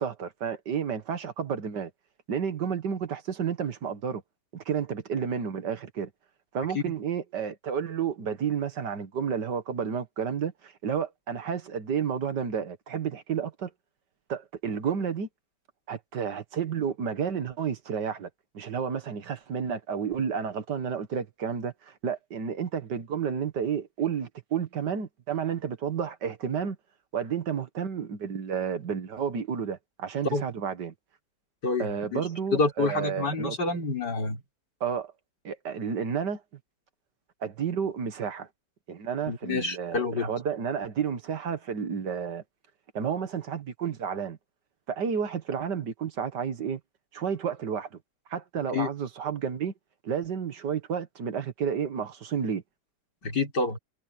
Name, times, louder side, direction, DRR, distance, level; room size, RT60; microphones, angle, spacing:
voice 1, 0.0-1.9 2.3-4.2 4.5-6.1 6.5-13.7 14.3-15.3 15.9-18.3 18.5-26.8 27.1-30.9 31.8-33.6 34.8-35.1 35.4-36.4 37.4-38.5 38.9-42.4 42.9-44.4 44.9-46.8 47.1-47.9 48.3-49.7 50.0-52.6, right 7 dB, 85° right, 2.1 m, -31 dB
voice 2, 31.6-32.3 32.5-34.4 39.3-40.3 48.7-48.9 53.2-53.8, left 3 dB, 85° left, 4.8 m, -28 dB
omnidirectional pair, 1.8 m